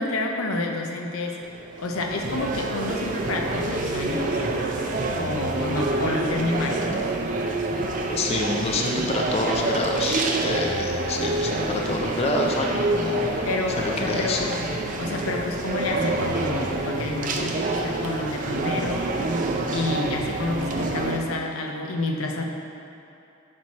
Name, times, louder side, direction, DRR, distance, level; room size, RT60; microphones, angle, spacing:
voice 1, 0.0-1.4 1.8-4.4 5.1-6.8 13.4-14.7 15.0-19.1 19.7-22.4, left 2 dB, 90° left, 2 dB, 0.6 m, -29 dB
sound 1, 1.4-21.2, right 2 dB, 40° right, 0.4 m, -27 dB
voice 2, 8.2-13.5 13.8-14.6, left 2 dB, 30° left, 1 dB, 0.3 m, -27 dB
6.3 x 4.4 x 4.1 m, 2.8 s
head